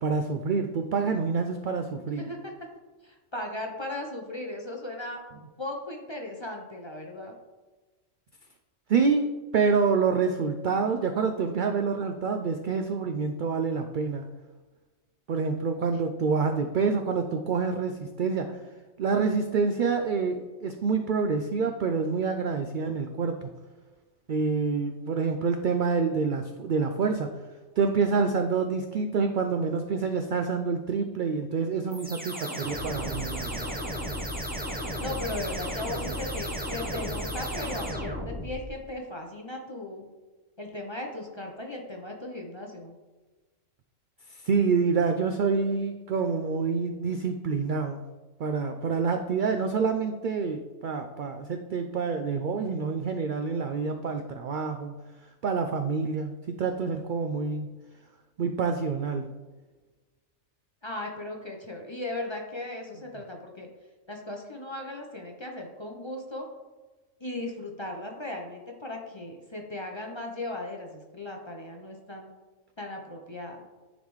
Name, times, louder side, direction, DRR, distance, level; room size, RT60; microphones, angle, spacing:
voice 1, 0.0-2.3 8.9-14.2 15.3-18.6 19.0-23.5 24.3-27.4 27.8-33.7 44.3-48.0 48.4-55.0 55.4-57.7 58.4-59.3, right 5 dB, 65° right, 6 dB, 0.5 m, -27 dB
voice 2, 2.2-2.5 3.0-5.2 5.6-7.4 35.0-40.1 40.6-42.9 60.8-63.7 64.1-66.5 67.2-72.3 72.8-73.6, left 1 dB, 25° left, 1 dB, 0.7 m, -37 dB
sound 1, 31.9-38.7, equal, 10° right, 0.6 m, -34 dB
10.0 x 4.1 x 3.1 m, 1.2 s
omnidirectional pair, 1.3 m